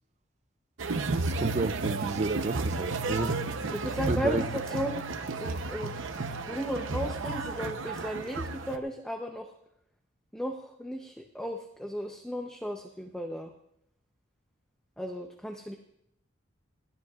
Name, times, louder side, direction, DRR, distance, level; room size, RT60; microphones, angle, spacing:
sound 1, 0.8-8.8, right 3 dB, 75° right, 0.8 m, -33 dB
voice 1, 1.2-3.7 4.1-4.4, right 3 dB, 35° right, 0.4 m, -31 dB
voice 2, 3.7-5.0 5.3-5.9 6.5-9.5 10.3-13.5 15.0-15.8, equal, 5° left, 0.8 m, -35 dB
20.0 x 15.5 x 2.5 m
head